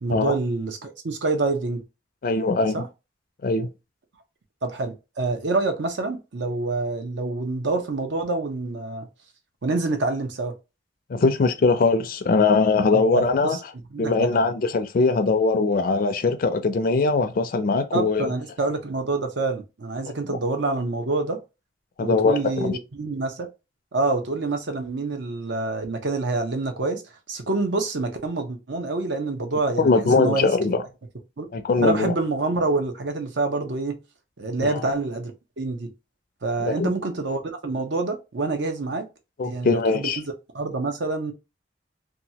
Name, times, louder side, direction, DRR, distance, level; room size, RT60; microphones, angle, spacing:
voice 1, 0.0-1.8 2.7-2.9 4.6-9.1 9.6-10.5 12.9-13.6 13.9-14.4 17.9-21.4 22.0-23.5 23.9-27.0 27.3-29.9 30.2-30.5 31.4-31.5 31.8-34.0 34.4-35.3 35.6-35.9 36.4-39.1 39.4-40.1 40.5-41.3, right 3 dB, 70° right, 0.7 m, -26 dB
voice 2, 2.2-2.8 3.4-3.7 11.1-13.6 14.0-18.3 20.3-20.4 22.0-22.8 29.8-30.8 31.5-32.1 34.6-34.9 36.6-36.9 39.4-40.2, left 3 dB, 50° left, 0.4 m, -21 dB
2.9 x 2.3 x 2.8 m
head